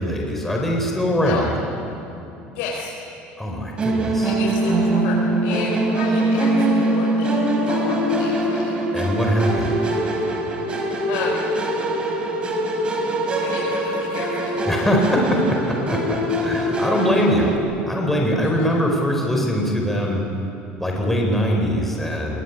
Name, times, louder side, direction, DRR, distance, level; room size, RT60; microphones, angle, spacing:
voice 1, 0.0-1.6 3.4-4.4 8.9-9.8 14.7-17.5 17.9-20.2 20.8-22.4, equal, 5° left, 0 dB, 4.3 m, -22 dB
voice 2, 2.5-2.9 4.2-7.4 7.7-8.7 10.7-10.8 11.1-11.4 13.4-14.5 18.4-18.5, left 5 dB, 85° left, -2 dB, 5.2 m, -32 dB
Musical instrument, 3.8-17.6, right 1 dB, 25° right, 4.3 m, -22 dB
25.5 x 22.5 x 10.0 m, 2.7 s
cardioid pair, 145°, 4 cm